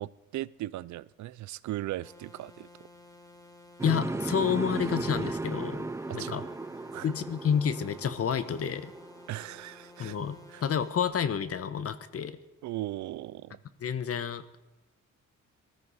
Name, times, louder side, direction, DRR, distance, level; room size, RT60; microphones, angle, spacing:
voice 1, 0.0-2.7 6.1-6.5 6.9-7.1 9.3-10.2 10.5-10.6 12.6-13.6, right 15 dB, 70° right, 0.5 m, -37 dB
sound 1, 2.0-11.0, left 2 dB, 10° left, 2.1 m, -54 dB
voice 2, 3.8-6.4 7.0-8.9 10.0-12.4 13.8-14.4, left 7 dB, 50° left, 1.1 m, -30 dB
sound 2, 3.8-9.8, right 3 dB, 10° right, 0.4 m, -36 dB
20.0 x 13.5 x 4.2 m
cardioid pair, 90°, 30 cm